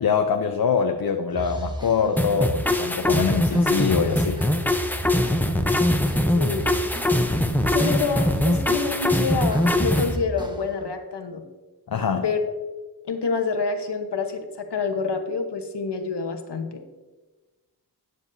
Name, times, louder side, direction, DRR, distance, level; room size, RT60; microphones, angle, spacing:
voice 1, 0.0-4.4 11.9-12.2, left 6 dB, 60° left, 5 dB, 0.7 m, -24 dB
sound 1, 1.3-10.9, right 1 dB, 10° right, 1.0 m, -35 dB
sound 2, 2.2-10.1, left 1 dB, 5° left, 0.7 m, -22 dB
voice 2, 6.3-6.8 7.7-11.4 12.2-12.4 13.1-16.8, left 4 dB, 80° left, 5 dB, 1.1 m, -27 dB
13.0 x 9.2 x 2.7 m, 1.2 s
wide cardioid pair, 90°, 40 cm